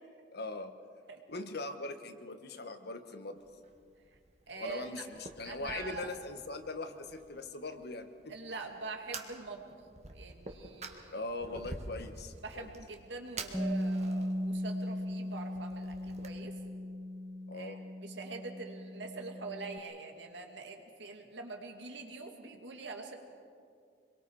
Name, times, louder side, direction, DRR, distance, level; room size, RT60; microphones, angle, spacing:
voice 1, 0.3-0.8 1.3-3.4 4.6-8.3 11.1-12.7 17.5-17.8, left 2 dB, 60° left, 8 dB, 1.3 m, -41 dB
Fire, 3.4-16.3, right 3 dB, 40° right, 1.6 m, -49 dB
voice 2, 4.5-5.0 5.4-6.1 8.3-9.7 10.1-11.2 12.4-16.5 17.5-17.8 18.0-23.1, right 3 dB, 75° right, 2 dB, 2.3 m, -44 dB
Bass guitar, 13.5-19.8, equal, 5° left, 0.7 m, -37 dB
26.0 x 22.0 x 4.8 m, 2.3 s
head